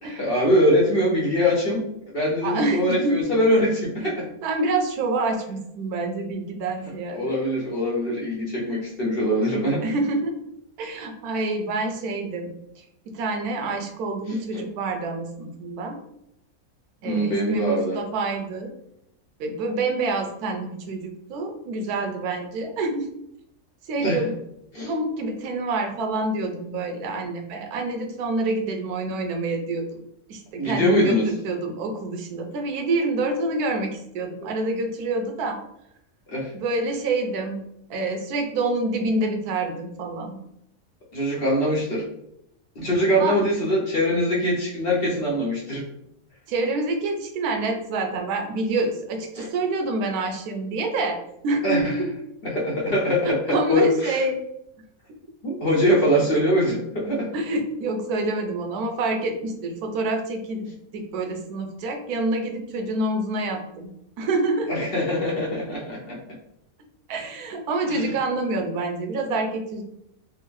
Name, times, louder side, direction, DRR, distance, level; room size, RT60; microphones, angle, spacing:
voice 1, 0.0-1.8 2.1-4.2 7.1-9.8 14.3-14.6 17.0-18.0 24.0-24.2 24.7-24.9 30.6-31.3 34.4-34.5 36.3-36.5 41.1-42.1 42.8-45.9 49.4-49.5 51.6-52.0 52.4-54.2 55.4-57.3 64.7-66.2 67.9-68.1, equal, 55° left, -4 dB, 0.7 m, -23 dB
voice 2, 2.4-3.3 4.0-4.1 4.4-7.4 9.8-10.4 10.8-12.9 13.1-16.0 17.0-18.7 19.4-23.1 23.9-24.3 24.9-30.0 30.3-35.6 36.5-37.6 37.9-40.4 43.2-43.4 46.5-51.2 51.4-52.1 53.2-54.4 57.3-60.7 60.9-63.9 64.2-64.7 67.1-69.8, right 2 dB, 85° right, 4 dB, 1.1 m, -27 dB
3.5 x 2.0 x 3.0 m, 0.78 s
omnidirectional pair, 1.5 m